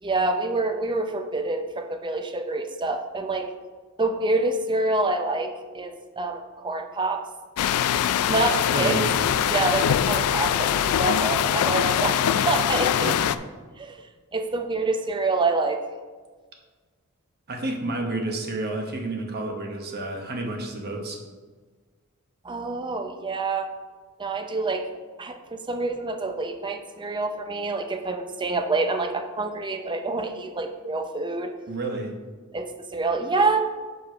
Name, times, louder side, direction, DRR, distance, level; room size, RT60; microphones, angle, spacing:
voice 1, 0.0-3.5 4.0-7.2 8.3-9.0 9.5-13.2 13.8-14.0 14.3-15.8 22.4-23.7 24.2-24.9 25.2-31.6 32.5-33.7, right 3 dB, 20° right, 6 dB, 0.6 m, -27 dB
sound 1, 7.6-13.4, left 9 dB, 85° left, 0.3 m, -23 dB
voice 2, 8.7-9.1 13.0-13.1 17.5-21.2 31.7-32.1, right 2 dB, 50° right, 2 dB, 1.1 m, -30 dB
6.1 x 5.3 x 4.9 m, 1.4 s
head